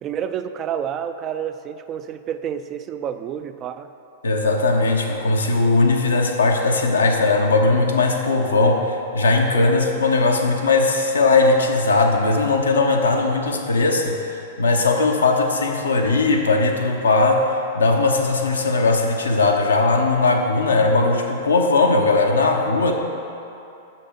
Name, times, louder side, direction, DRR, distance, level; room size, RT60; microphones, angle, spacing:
voice 1, 0.0-3.9 9.5-10.0, right 9 dB, 30° right, 10 dB, 0.3 m, -29 dB
voice 2, 4.2-22.9, left 3 dB, 80° left, 2 dB, 0.7 m, -19 dB
6.2 x 5.6 x 5.2 m, 2.8 s
figure-of-eight pair, 100°, 0 cm